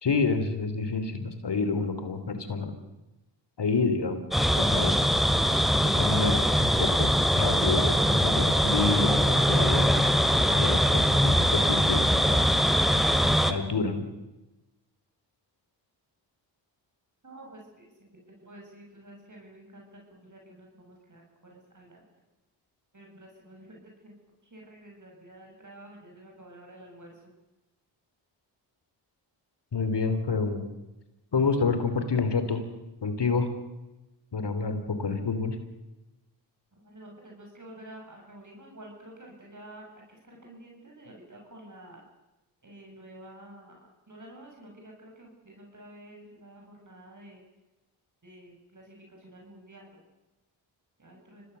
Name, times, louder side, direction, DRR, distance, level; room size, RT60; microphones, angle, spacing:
voice 1, 0.0-2.8 3.6-5.0 5.8-10.0 10.5-12.4 13.5-14.1 29.7-30.7 31.3-32.6 33.0-33.5 34.3-35.6, left 4 dB, 55° left, 9 dB, 3.2 m, -28 dB
sound 1, 4.3-13.5, equal, ahead, 2.4 m, -22 dB
voice 2, 17.2-18.1 18.4-21.2 21.5-22.0 22.9-23.8 24.0-24.1 24.5-27.1 34.5-34.7 36.8-42.0 42.6-43.8 44.1-47.4 48.2-50.0 51.0-51.4, right 1 dB, 40° right, 0 dB, 7.5 m, -49 dB
25.5 x 18.5 x 7.0 m, 1.0 s
supercardioid pair, 40°, 48 cm